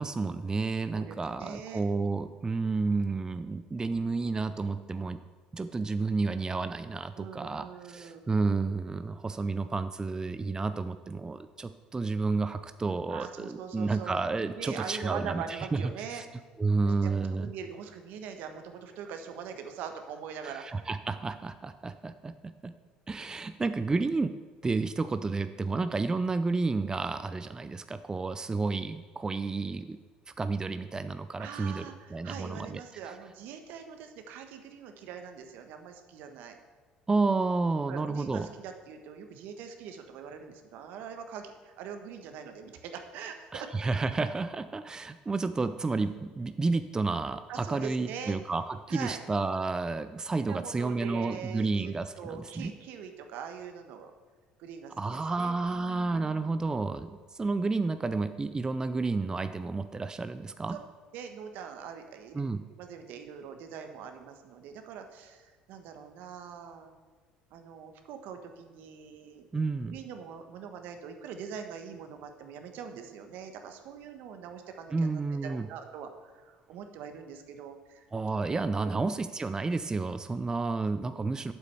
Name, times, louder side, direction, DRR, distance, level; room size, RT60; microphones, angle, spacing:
voice 1, 0.0-5.2 5.5-15.8 16.1-16.2 16.6-17.5 20.4-22.7 23.1-24.3 24.6-30.0 30.4-31.8 32.1-32.8 37.1-38.5 43.5-52.7 55.0-60.8 62.3-62.6 69.5-70.0 74.9-75.7 78.1-81.5, right 3 dB, 20° right, 11 dB, 0.5 m, -31 dB
voice 2, 0.9-1.8 7.2-8.4 13.1-16.2 16.8-20.9 31.4-36.6 37.9-43.7 47.5-48.4 48.9-49.2 50.4-54.1 54.6-56.7 61.1-62.4 62.8-66.9 67.5-69.5 69.9-75.1 75.4-78.1 78.5-79.0, right 7 dB, 70° right, 6 dB, 1.2 m, -43 dB
8.7 x 7.7 x 6.9 m, 1.4 s
supercardioid pair, 75°, 3 cm